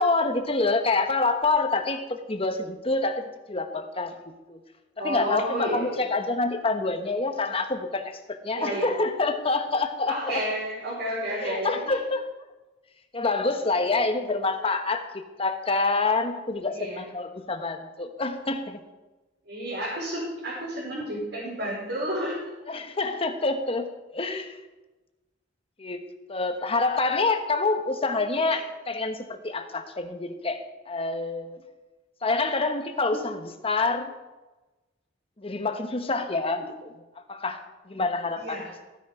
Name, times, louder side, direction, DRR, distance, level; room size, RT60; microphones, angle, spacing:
voice 1, 0.0-4.1 4.5-4.6 5.0-10.4 11.3-12.2 13.1-15.1 15.4-18.8 22.7-24.6 25.8-31.6 32.2-34.1 35.4-36.6 37.3-37.6 37.9-38.6, left 3 dB, 30° left, 7 dB, 1.2 m, -27 dB
voice 2, 5.0-5.9 8.5-8.9 10.1-12.0 16.7-17.0 19.4-22.4 38.4-38.7, equal, 65° right, -8 dB, 5.0 m, -31 dB
15.0 x 9.9 x 5.0 m, 1.1 s
head